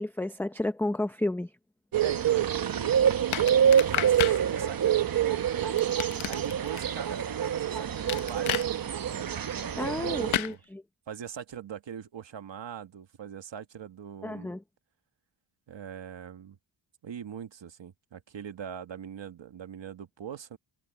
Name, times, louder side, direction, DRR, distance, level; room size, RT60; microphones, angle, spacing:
voice 1, 0.0-1.5 9.8-10.8 14.2-14.6, left 1 dB, 5° left, 0.6 m, -31 dB
sound 1, 1.9-10.4, right 9 dB, 45° right, 0.9 m, -26 dB
voice 2, 2.0-5.8 6.3-9.0 10.0-10.6 11.1-14.5 15.7-16.6 17.0-20.6, right 8 dB, 65° right, 1.7 m, -41 dB
sound 2, 3.3-4.4 5.8-6.8 8.1-8.7 10.3-10.5, left 11 dB, 75° left, 0.9 m, -30 dB
wide cardioid pair, 160°, 49 cm